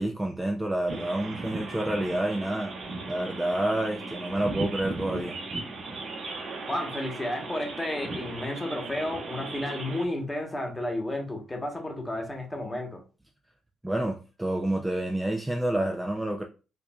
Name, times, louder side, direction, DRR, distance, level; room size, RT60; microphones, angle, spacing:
voice 1, 0.0-2.7 3.1-5.4 13.8-16.4, right 1 dB, 10° right, 0.4 m, -28 dB
sound 1, 0.9-10.1, right 3 dB, 55° right, 1.2 m, -37 dB
voice 2, 6.7-13.0, left 1 dB, 15° left, 1.1 m, -32 dB
4.6 x 2.6 x 2.3 m
cardioid pair, 90°, 0 cm